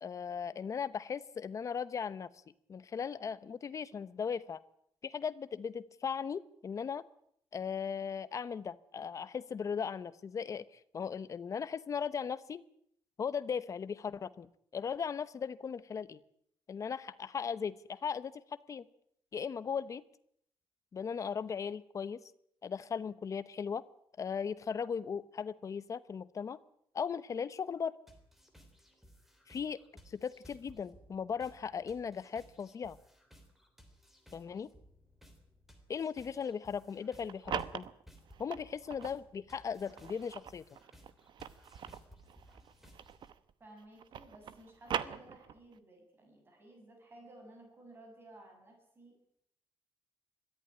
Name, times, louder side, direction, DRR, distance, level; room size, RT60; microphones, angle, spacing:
voice 1, 0.0-2.3 2.7-4.6 5.0-7.1 7.5-12.6 13.2-16.2 16.7-18.8 19.3-20.0 20.9-22.2 22.6-23.8 24.2-26.6 26.9-27.9 29.5-29.8 30.1-33.0 34.3-34.7 35.9-37.9 38.4-40.6, left 6 dB, 35° left, 15 dB, 0.9 m, -38 dB
sound 1, 28.1-43.3, equal, 5° right, 3.4 m, -60 dB
sound 2, 37.0-39.2 39.7-43.5 43.8-45.8, right 9 dB, 55° right, 1.0 m, -41 dB
voice 2, 43.6-49.2, right 1 dB, 25° right, 2 dB, 7.2 m, -56 dB
22.0 x 14.5 x 9.9 m, 0.70 s
wide cardioid pair, 175°, 9 cm